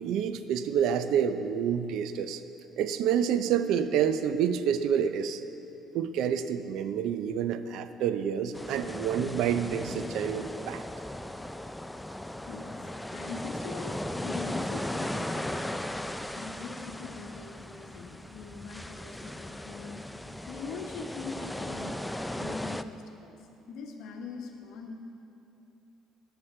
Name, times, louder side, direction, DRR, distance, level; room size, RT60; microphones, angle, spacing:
voice 1, 0.0-2.4 2.8-5.4 5.9-10.8, right 8 dB, 75° right, 11 dB, 0.5 m, -28 dB
sound 1, 8.5-22.8, left 1 dB, 5° left, 0.3 m, -37 dB
voice 2, 12.3-15.7 16.3-20.0 20.5-23.4 23.7-24.9, left 4 dB, 70° left, 3 dB, 1.1 m, -42 dB
11.0 x 9.7 x 4.4 m, 2.8 s
cardioid pair, 100°, 0 cm